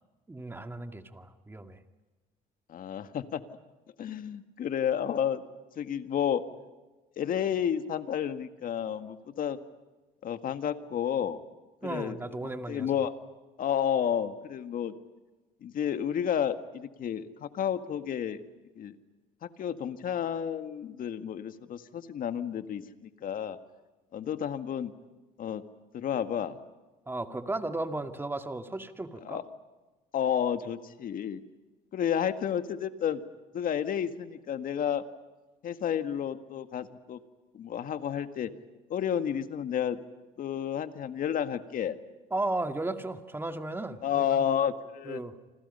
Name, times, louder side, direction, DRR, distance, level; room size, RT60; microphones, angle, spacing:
voice 1, 0.3-1.8 11.8-12.9 27.1-29.4 42.3-44.3 45.1-45.4, right 2 dB, 15° right, 7 dB, 2.2 m, -35 dB
voice 2, 2.7-3.4 4.0-5.4 5.8-6.4 7.2-9.6 10.2-11.4 11.8-12.2 12.4-13.1 13.6-14.9 15.6-18.4 18.8-18.9 19.4-23.6 24.1-24.9 25.4-25.6 25.9-26.6 29.2-29.4 30.1-31.4 31.9-33.2 33.5-35.0 35.6-37.2 37.5-38.5 38.9-40.0 40.4-42.0 44.0-45.2, left 9 dB, 55° left, 9 dB, 1.8 m, -31 dB
30.0 x 26.0 x 5.6 m, 1.2 s
cardioid pair, 110°, 17 cm